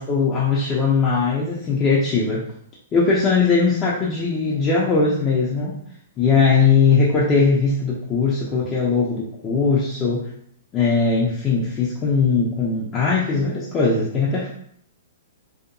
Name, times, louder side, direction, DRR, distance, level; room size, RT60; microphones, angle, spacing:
voice 1, 0.0-2.4 2.9-5.7 6.2-10.3 10.7-14.5, left 4 dB, 20° left, -6 dB, 0.4 m, -20 dB
2.7 x 2.1 x 2.5 m, 0.65 s
hypercardioid pair, 160°, 0 cm